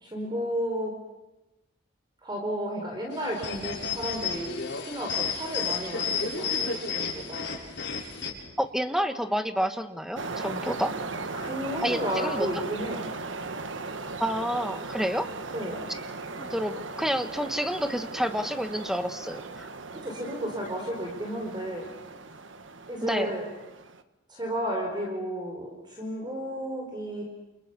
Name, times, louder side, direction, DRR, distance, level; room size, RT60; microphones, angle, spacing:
voice 1, 0.0-0.9 2.2-7.5 11.3-13.1 15.5-15.9 20.0-21.9 22.9-23.4 24.3-27.2, equal, 25° right, 1 dB, 4.7 m, -33 dB
sound 1, 3.1-8.3, left 5 dB, 60° left, 7.3 m, -32 dB
voice 2, 8.6-10.9 11.8-12.5 14.2-15.3 16.4-19.7 23.0-23.3, equal, ahead, 8 dB, 1.4 m, -29 dB
sound 2, 10.2-24.0, right 3 dB, 75° right, 1.4 m, -38 dB
29.5 x 29.0 x 6.9 m, 0.99 s
head